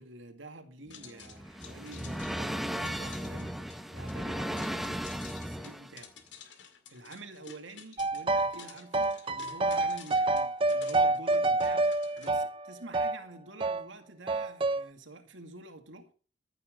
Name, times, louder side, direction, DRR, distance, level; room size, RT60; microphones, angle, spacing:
voice 1, 0.0-6.1 6.9-16.1, right 2 dB, 80° right, 2.2 m, -48 dB
sound 1, 0.9-12.3, left 8 dB, 70° left, 2.1 m, -52 dB
sound 2, 0.9-6.0, equal, ahead, 0.8 m, -36 dB
sound 3, 8.0-8.6 8.9-13.2 13.6-13.8 14.3-14.8, right 2 dB, 30° right, 0.5 m, -28 dB
14.5 x 7.4 x 6.3 m
head